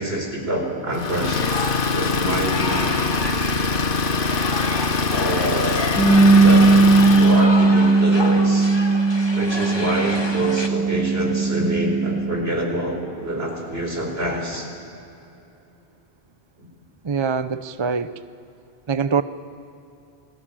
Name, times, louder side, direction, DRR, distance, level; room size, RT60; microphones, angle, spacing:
voice 1, 0.0-1.4 1.9-2.9 5.1-5.8 6.4-6.8 7.1-8.8 9.3-14.7 16.6-16.7, right 1 dB, 65° right, 2 dB, 4.7 m, -26 dB
Idling, 0.9-7.5, left 4 dB, 55° left, 1.2 m, -23 dB
sound 1, 1.2-10.7, left 2 dB, 25° left, 1.5 m, -30 dB
Bass guitar, 6.0-12.2, right 3 dB, 10° right, 3.1 m, -17 dB
voice 2, 17.0-18.2 18.9-19.2, right 5 dB, 35° right, 13 dB, 0.5 m, -23 dB
28.5 x 20.0 x 8.9 m, 2.8 s
omnidirectional pair, 1.1 m